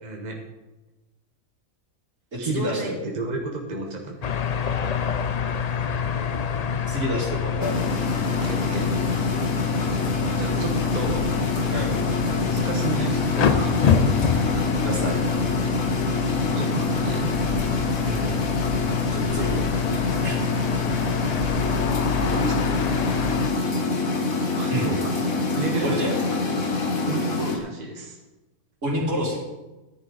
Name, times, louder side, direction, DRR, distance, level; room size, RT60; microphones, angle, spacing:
voice 1, 0.0-0.4 2.4-4.2 8.2-8.9 10.3-11.5 12.4-13.9 16.3-17.4 22.0-22.6 24.5-25.2 25.5-26.0 27.0-28.2, right 3 dB, 35° right, 0 dB, 1.3 m, -32 dB
voice 2, 2.3-3.0 6.9-7.8 11.7-12.0 14.8-15.2 18.0-18.3 19.1-19.7 20.2-20.4 24.7-24.9 25.8-26.1 28.8-29.4, equal, 60° right, -3 dB, 3.1 m, -28 dB
sound 1, 4.2-23.5, left 7 dB, 65° left, 0.4 m, -26 dB
sound 2, 7.6-27.6, left 3 dB, 85° left, 1.8 m, -26 dB
14.0 x 10.5 x 4.0 m, 1.1 s
omnidirectional pair, 1.4 m